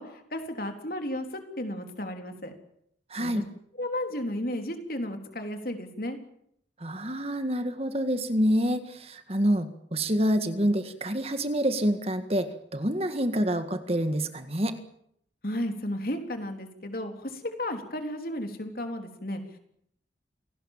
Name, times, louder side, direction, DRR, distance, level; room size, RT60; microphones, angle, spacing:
voice 1, 0.0-2.5 3.2-3.4 3.8-6.2 15.4-19.4, left 1 dB, 50° left, 5 dB, 3.7 m, -33 dB
voice 2, 3.1-3.5 6.8-14.8, equal, 35° right, 9 dB, 1.8 m, -27 dB
27.5 x 18.5 x 7.5 m, 0.71 s
head